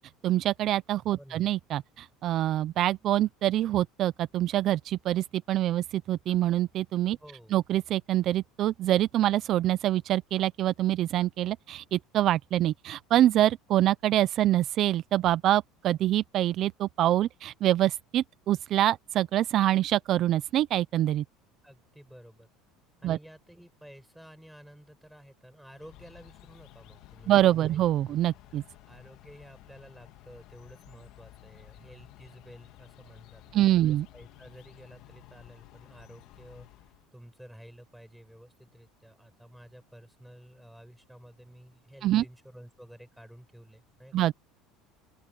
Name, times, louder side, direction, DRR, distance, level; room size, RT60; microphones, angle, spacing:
voice 1, 0.2-7.2 7.5-21.2 23.0-23.2 27.3-28.6 33.5-34.1 42.0-42.2 44.1-44.3, right 13 dB, 35° right, 0.3 m, -25 dB
voice 2, 1.2-1.5 7.2-7.6 21.6-22.5 23.0-27.8 28.1-28.2 28.5-44.3, equal, ahead, 7.9 m, -52 dB
sound 1, 25.7-37.1, left 16 dB, 45° left, 1.9 m, -54 dB
open air
cardioid pair, 180°, 0 cm